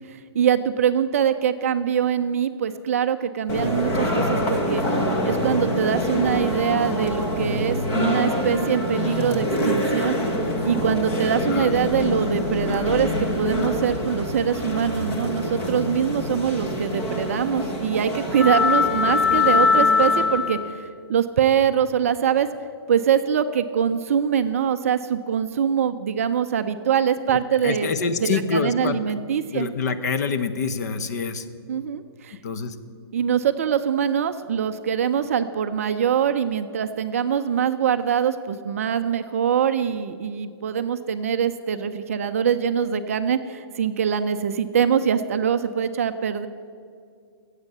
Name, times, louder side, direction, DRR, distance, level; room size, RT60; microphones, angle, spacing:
voice 1, 0.1-4.8 5.2-10.2 10.6-22.5 22.9-27.9 28.2-29.7 31.7-32.4 33.1-46.5, right 8 dB, 30° right, 9 dB, 0.5 m, -23 dB
sound 1, 3.5-20.6, left 2 dB, 15° left, 1.0 m, -24 dB
sound 2, 8.1-20.3, left 1 dB, 70° left, 2.6 m, -40 dB
voice 2, 27.6-29.0 29.5-31.4 32.4-32.7, left 5 dB, 40° left, 10 dB, 0.8 m, -26 dB
15.5 x 8.2 x 8.0 m, 2.2 s
hypercardioid pair, 170°, 14 cm